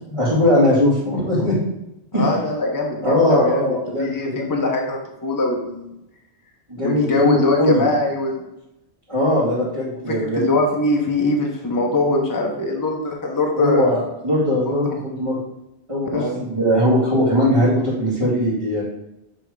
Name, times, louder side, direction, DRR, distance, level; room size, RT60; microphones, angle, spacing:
voice 1, 0.1-1.7 2.1-2.3 3.0-4.4 6.7-7.8 9.1-10.5 13.6-15.4 15.9-18.8, left 1 dB, 30° right, -12 dB, 2.1 m, -20 dB
voice 2, 2.1-5.9 6.8-8.4 10.1-14.0 14.6-15.0 16.1-16.4, left 2 dB, 20° left, 1 dB, 0.8 m, -22 dB
6.7 x 3.5 x 4.8 m, 0.87 s
omnidirectional pair, 1.1 m